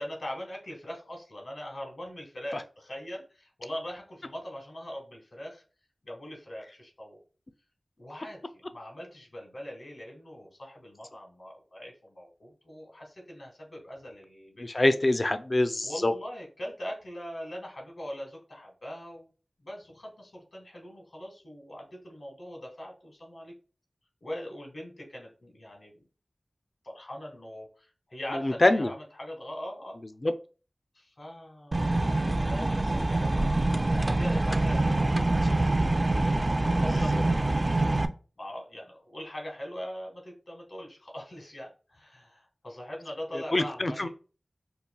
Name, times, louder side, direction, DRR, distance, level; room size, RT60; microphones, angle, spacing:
voice 1, 0.0-5.6 6.0-7.2 8.0-8.4 8.7-15.0 15.8-19.3 19.6-23.5 24.2-26.0 26.8-30.0 30.9-31.8 32.3-33.6 33.8-35.2 36.0-36.3 36.6-37.5 38.4-44.1, equal, 75° left, 1 dB, 1.2 m, -41 dB
voice 2, 14.6-16.1 28.3-28.9 30.2-30.3 35.4-35.5 43.5-44.1, left 2 dB, 50° left, 9 dB, 0.4 m, -24 dB
sound 1, 31.7-38.1, right 2 dB, 40° right, 0.3 m, -25 dB
5.3 x 2.4 x 2.2 m, 0.36 s
cardioid pair, 40°, 0 cm